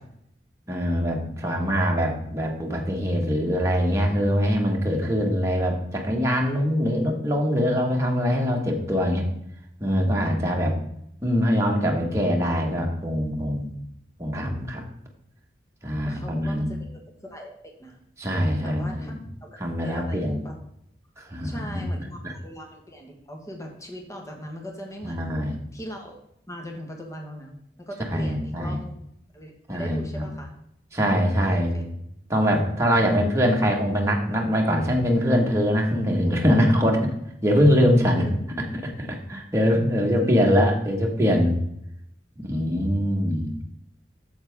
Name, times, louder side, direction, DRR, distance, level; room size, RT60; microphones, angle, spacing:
voice 1, 0.7-9.2 9.8-10.8 11.2-13.7 14.2-14.8 15.8-16.7 18.2-19.1 19.6-20.4 21.2-21.8 22.2-22.3 25.0-25.5 28.1-28.8 29.7-30.2 30.9-31.8 32.3-37.0 37.4-38.2 38.7-41.6 42.4-43.5, equal, 15° right, -1 dB, 1.5 m, -23 dB
voice 2, 16.1-18.0 18.6-20.5 21.4-25.4 25.7-26.1 26.5-28.9 29.3-30.5 31.4-31.9 38.2-38.4 40.1-40.5, equal, 15° left, 2 dB, 1.4 m, -39 dB
8.6 x 7.5 x 3.5 m, 0.75 s
head